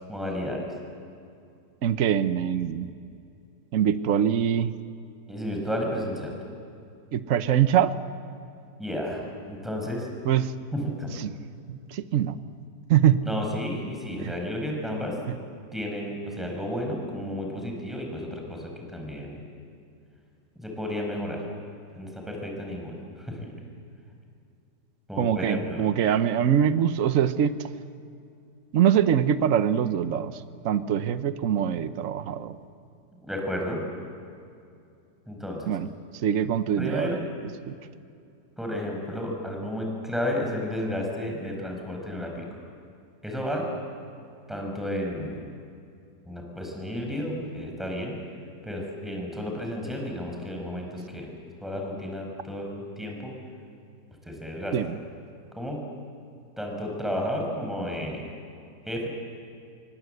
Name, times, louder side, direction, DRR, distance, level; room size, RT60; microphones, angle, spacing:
voice 1, 0.1-0.6 5.3-6.3 8.8-10.1 10.7-11.1 13.2-15.2 15.7-19.4 20.6-21.4 21.9-23.5 25.1-25.8 33.2-33.8 35.3-35.7 36.8-37.2 38.6-42.4 43.2-43.7 44.5-45.5 46.2-48.1 48.6-51.3 51.6-53.3 54.2-54.7 55.5-55.8 56.6-58.2 58.8-59.1, left 1 dB, ahead, 1 dB, 5.1 m, -32 dB
voice 2, 1.8-2.9 3.7-4.7 7.1-7.9 10.2-10.5 11.2-11.3 11.7-12.4 12.9-13.2 14.2-14.3 25.2-27.5 28.7-32.5 35.7-35.9 36.2-37.2 37.7-37.8 54.7-54.9, right 9 dB, 55° right, 12 dB, 1.2 m, -23 dB
27.0 x 23.5 x 7.9 m, 2.5 s
omnidirectional pair, 1.8 m